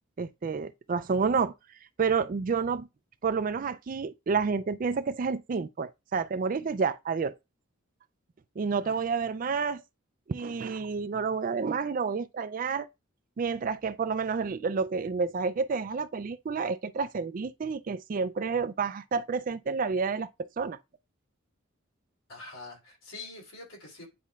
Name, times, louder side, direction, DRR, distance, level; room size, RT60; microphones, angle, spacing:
voice 1, 0.2-1.5 2.0-2.9 3.2-7.4 8.6-9.8 10.3-12.9 13.4-20.3 20.6-20.8, right 5 dB, 40° right, 0.4 m, -29 dB
voice 2, 8.8-9.4 22.3-24.1, left 3 dB, 80° left, 3.3 m, -46 dB
10.0 x 4.2 x 2.4 m
head